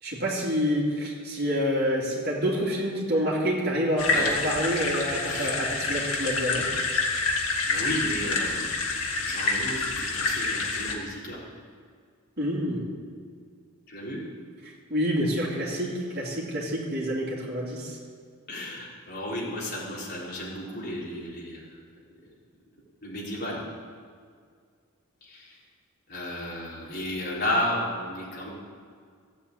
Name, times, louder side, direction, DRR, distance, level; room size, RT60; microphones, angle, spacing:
voice 1, 0.0-6.7 12.4-12.9 14.6-18.0, equal, 45° right, -4 dB, 3.3 m, -28 dB
sound 1, 4.0-10.9, left 3 dB, 70° left, 1.8 m, -27 dB
voice 2, 5.2-5.6 7.7-8.7 9.2-11.4 13.9-14.2 18.5-21.6 23.0-23.6 25.2-25.5 26.1-28.5, left 1 dB, 45° left, -6 dB, 4.1 m, -33 dB
14.0 x 8.4 x 8.7 m, 2.1 s
head